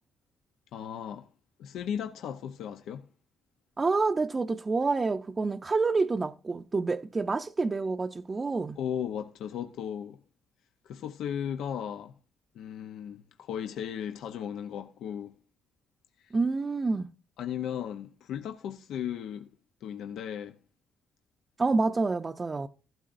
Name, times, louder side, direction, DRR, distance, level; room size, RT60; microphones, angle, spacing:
voice 1, 0.7-1.3 1.6-3.1 8.8-10.2 10.8-12.1 12.5-15.4 16.2-16.4 17.4-19.5 19.8-20.6, left 9 dB, 80° left, 0.7 m, -36 dB
voice 2, 3.8-8.8 16.3-17.1 21.6-22.7, right 3 dB, 30° right, 0.6 m, -28 dB
15.0 x 12.5 x 2.6 m
cardioid pair, 90°, 0 cm